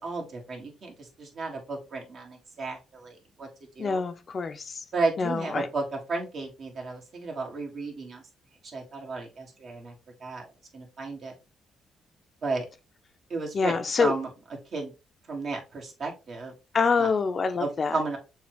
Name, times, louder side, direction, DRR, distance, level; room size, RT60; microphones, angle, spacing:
voice 1, 0.0-3.5 3.8-4.0 4.9-5.8 6.1-8.2 8.7-9.9 10.2-10.4 10.7-11.3 12.4-12.7 13.3-14.3 14.7-14.9 15.3-16.5 17.0-17.1 17.6-18.2, right 3 dB, 55° right, 1.8 m, -33 dB
voice 2, 3.8-4.8 5.2-5.7 13.5-14.2 16.7-18.0, left 5 dB, 40° left, 0.5 m, -26 dB
6.9 x 2.3 x 3.1 m
cardioid pair, 90°, 0 cm